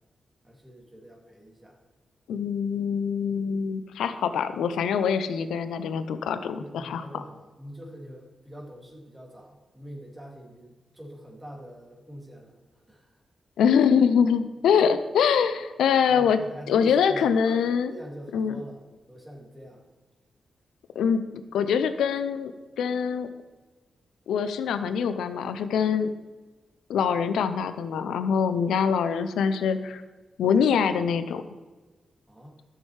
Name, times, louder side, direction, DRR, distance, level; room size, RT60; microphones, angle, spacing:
voice 1, 0.4-1.8 6.6-12.6 12.9-13.1 16.1-19.8 28.5-28.7 32.3-32.6, equal, 15° right, -1 dB, 2.5 m, -44 dB
voice 2, 2.3-7.0 13.6-16.4 16.7-17.9 18.3-18.5 21.0-21.2 21.5-22.5 22.8-23.3 24.3-26.1 26.9-30.0 30.4-31.4, left 7 dB, 85° left, 11 dB, 0.5 m, -24 dB
12.0 x 6.5 x 3.3 m, 1.2 s
supercardioid pair, 40°, 0 cm